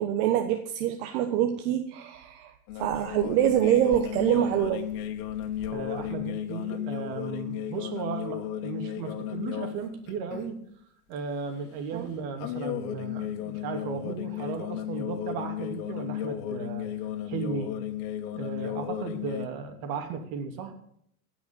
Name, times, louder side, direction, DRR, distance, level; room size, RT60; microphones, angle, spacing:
voice 1, 0.0-2.5 2.8-4.8 11.9-12.1, right 10 dB, 70° right, 6 dB, 1.4 m, -25 dB
sound 1, 2.7-9.8 10.1-10.5 12.4-19.5, left 11 dB, 65° left, 1.8 m, -34 dB
voice 2, 5.7-10.6 11.1-16.9 17.2-17.8 18.3-20.8, right 6 dB, 50° right, 5 dB, 2.9 m, -35 dB
17.5 x 6.1 x 8.8 m, 0.69 s
supercardioid pair, 130°, 46 cm